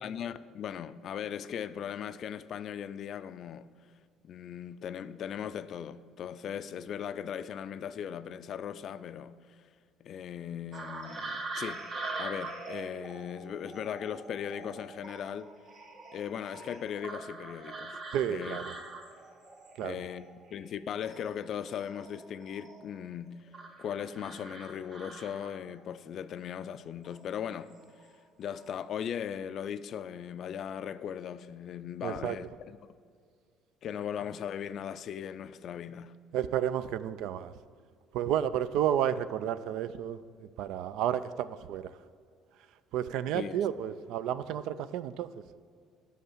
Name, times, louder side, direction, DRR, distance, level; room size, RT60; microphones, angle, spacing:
voice 1, 0.0-3.7 4.2-9.4 10.0-11.8 12.2-15.5 16.1-18.0 18.3-18.6 19.8-20.2 20.5-23.5 23.8-27.7 28.4-32.8 33.8-36.1 43.3-43.6, left 8 dB, 55° left, 0.3 m, -38 dB
sound 1, 10.7-20.7 21.0-23.0 23.5-25.8 27.0-27.2 27.7-28.1 28.4-28.7, right 3 dB, 55° right, 1.3 m, -43 dB
voice 2, 18.1-18.7 19.8-20.0 32.0-32.4 36.3-37.5 38.1-42.0 42.9-45.4, right 10 dB, 75° right, 0.3 m, -31 dB
6.2 x 5.4 x 6.5 m
supercardioid pair, 85°, 0 cm